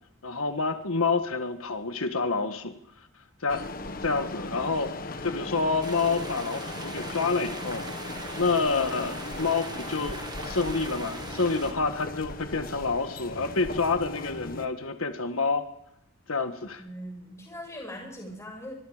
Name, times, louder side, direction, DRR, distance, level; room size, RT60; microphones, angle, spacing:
voice 1, 0.2-2.7 3.4-3.6 4.0-4.9 5.2-7.8 8.4-15.7 16.3-16.8, left 4 dB, 80° left, 8 dB, 1.6 m, -28 dB
sound 1, 3.5-14.7, left 2 dB, 40° left, 1.5 m, -38 dB
sound 2, 5.8-11.7, right 3 dB, 20° right, 1.5 m, -41 dB
voice 2, 16.8-18.7, equal, 15° left, 0 dB, 6.7 m, -40 dB
25.0 x 22.5 x 5.0 m, 0.79 s
head